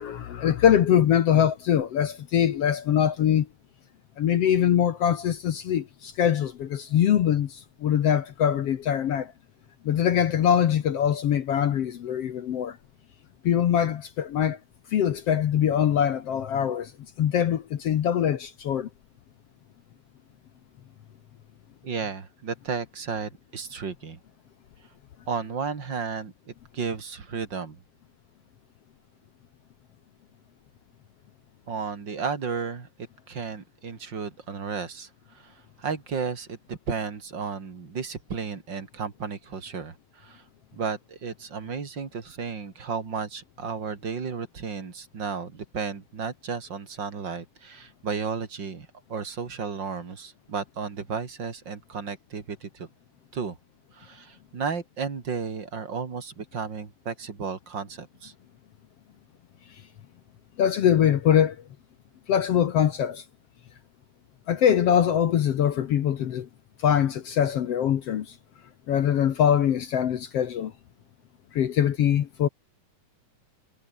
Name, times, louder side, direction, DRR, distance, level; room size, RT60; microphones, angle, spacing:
voice 1, 0.0-3.5 4.2-9.3 9.8-12.8 13.4-14.6 14.9-16.9 17.2-18.9 60.6-61.6 62.3-63.2 64.5-66.5 66.8-68.3 68.9-70.7 71.5-72.5, left 9 dB, 60° left, 1.6 m, -23 dB
voice 2, 21.8-24.2 25.3-27.8 31.7-32.9 33.3-40.4 40.7-52.9 53.3-53.6 53.9-58.3, right 5 dB, 35° right, 2.9 m, -33 dB
omnidirectional pair, 4.2 m